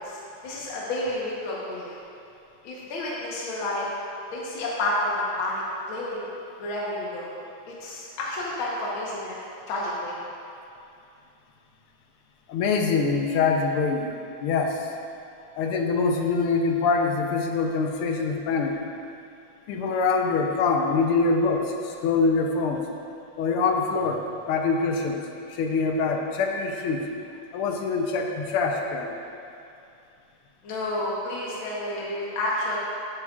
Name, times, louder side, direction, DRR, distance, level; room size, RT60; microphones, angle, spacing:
voice 1, 0.0-1.9 2.6-3.9 4.3-5.6 5.9-6.3 6.6-7.3 7.8-9.4 9.7-10.2 30.6-32.8, left 1 dB, 70° left, -5 dB, 1.9 m, -30 dB
voice 2, 12.5-14.1 14.4-14.9 15.6-18.8 19.7-22.9 23.4-25.2 25.5-27.1 27.5-29.2, left 4 dB, 85° left, 3 dB, 1.6 m, -24 dB
12.5 x 8.2 x 2.4 m, 2.6 s
omnidirectional pair, 2.4 m